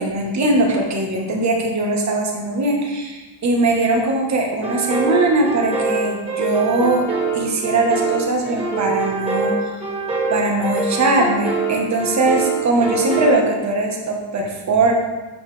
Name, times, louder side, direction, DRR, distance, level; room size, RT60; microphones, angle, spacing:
voice 1, 0.0-7.0 7.3-9.6 10.3-14.9, right 2 dB, 35° right, 1 dB, 1.4 m, -20 dB
sound 1, 4.6-13.4, right 4 dB, 15° right, 2.0 m, -24 dB
8.9 x 5.6 x 3.4 m, 1.2 s
cardioid pair, 135°, 48 cm